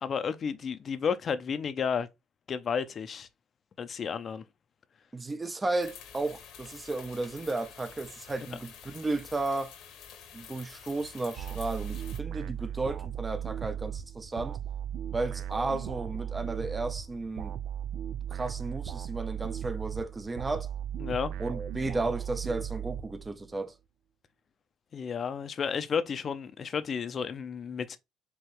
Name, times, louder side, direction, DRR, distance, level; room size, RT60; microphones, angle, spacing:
voice 1, 0.0-2.1 2.5-3.3 3.8-4.4 21.0-21.3 24.9-28.0, left 6 dB, 40° left, 0.6 m, -32 dB
voice 2, 5.1-9.7 10.3-14.6 15.1-17.6 18.3-20.7 21.4-23.7, right 2 dB, 20° right, 0.7 m, -34 dB
sound 1, 5.8-12.2, left 8 dB, 80° left, 1.2 m, -49 dB
sound 2, 11.4-23.6, right 9 dB, 70° right, 0.6 m, -37 dB
4.7 x 3.0 x 3.1 m
cardioid pair, 110°, 0 cm